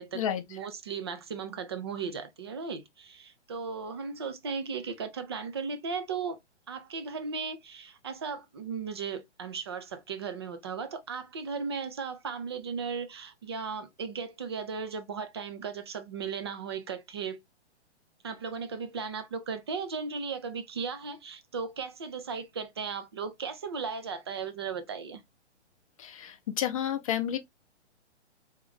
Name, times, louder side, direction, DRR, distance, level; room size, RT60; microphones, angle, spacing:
voice 1, 0.5-6.4 6.7-17.4 18.2-25.2, right 5 dB, 25° right, 0.4 m, -36 dB
voice 2, 26.0-27.4, left 10 dB, 30° left, 0.6 m, -30 dB
3.6 x 2.5 x 3.5 m
figure-of-eight pair, 125°, 35 cm